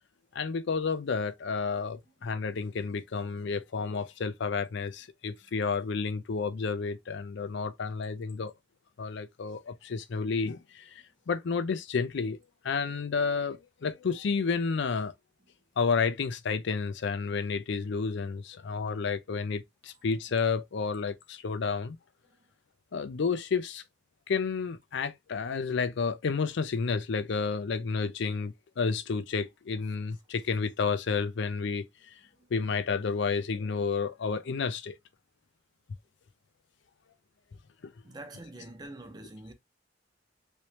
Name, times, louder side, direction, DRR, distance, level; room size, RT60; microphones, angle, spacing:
voice 1, 0.3-8.5 9.0-12.4 12.6-15.1 15.8-22.0 22.9-23.8 24.3-31.9 32.5-35.0 37.8-37.9, left 5 dB, 65° left, 0.5 m, -31 dB
voice 2, 38.0-39.5, right 2 dB, 20° right, 0.7 m, -45 dB
3.2 x 3.1 x 2.8 m
head